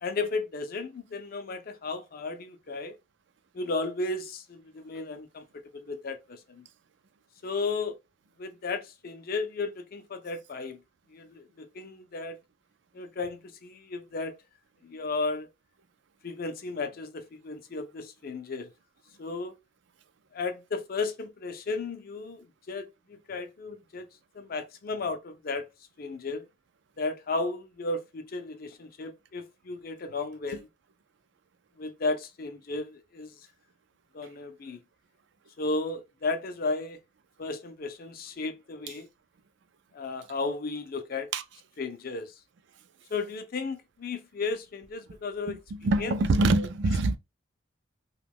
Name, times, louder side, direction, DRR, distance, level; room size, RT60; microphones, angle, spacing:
voice 1, 0.0-3.0 3.5-5.4 5.7-6.7 7.4-8.0 8.4-10.8 11.1-12.4 12.9-14.4 14.8-15.5 16.2-18.7 19.2-19.6 20.3-24.1 24.3-25.7 26.0-26.5 27.0-30.7 31.8-33.3 34.1-34.8 35.6-37.0 37.4-39.1 39.9-41.3 41.8-42.3 43.1-45.6 46.0-46.1 46.5-46.7, left 3 dB, 50° left, 0.5 m, -34 dB
voice 2, 45.5-47.2, right 2 dB, 65° right, 0.4 m, -25 dB
2.9 x 2.3 x 3.4 m
head